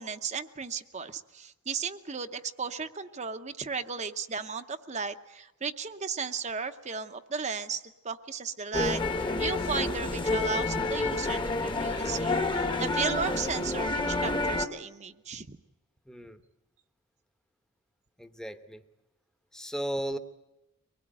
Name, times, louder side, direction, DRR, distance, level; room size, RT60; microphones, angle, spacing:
voice 1, 0.0-15.6, right 5 dB, 30° right, 8 dB, 0.8 m, -35 dB
sound 1, 8.7-14.7, left 2 dB, 20° left, 1.2 m, -29 dB
voice 2, 16.1-16.4 18.2-18.8 19.5-20.2, right 1 dB, 5° left, 8 dB, 1.0 m, -35 dB
24.0 x 20.0 x 9.0 m, 0.99 s
head